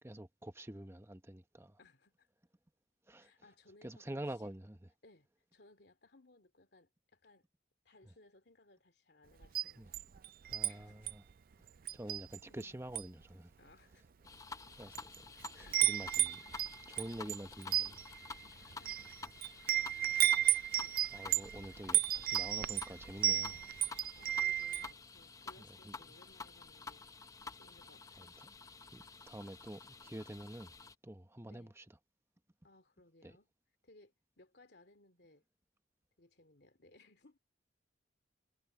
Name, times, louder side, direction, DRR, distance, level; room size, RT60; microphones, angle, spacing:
voice 1, 0.0-1.8 3.1-3.3 3.8-4.8 9.8-9.9 10.5-11.2 11.9-13.5 14.8-15.1 15.5-16.4 16.9-18.0 21.1-23.6 25.6-26.0 28.2-28.5 28.9-30.7 31.0-31.9 33.2-33.3, right 1 dB, 15° right, 1.0 m, -47 dB
voice 2, 1.8-2.3 3.2-4.5 5.0-7.5 7.8-9.8 10.6-11.1 12.1-12.2 12.5-12.8 13.6-14.1 15.5-15.9 18.8-19.0 19.9-20.1 20.4-21.1 24.2-27.1 27.5-28.3 31.5-31.7 32.6-33.5 33.8-35.4 36.2-37.4, left 2 dB, 60° left, 2.9 m, -64 dB
Wind chime, 9.4-10.7 11.1-11.3 11.9-12.6 12.9-13.2 13.9-14.0 14.7-15.2 15.4-24.9, right 12 dB, 50° right, 0.4 m, -33 dB
sound 1, 14.2-31.0, left 4 dB, 20° left, 0.6 m, -50 dB
head